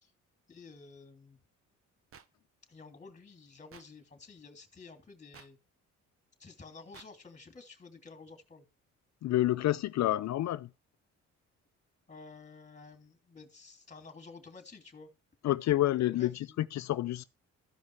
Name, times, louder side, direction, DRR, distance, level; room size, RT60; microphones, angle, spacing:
voice 1, 0.5-1.4 2.7-5.6 6.4-8.6 12.1-15.1 16.1-16.6, left 4 dB, 25° left, 2.8 m, -52 dB
sound 1, 2.1-2.3 3.7-3.9 5.3-5.5 6.9-7.1, right 7 dB, 50° right, 0.9 m, -52 dB
voice 2, 9.2-10.7 15.4-17.2, left 14 dB, 65° left, 0.5 m, -29 dB
14.0 x 5.3 x 4.7 m
cardioid pair, 90°, 30 cm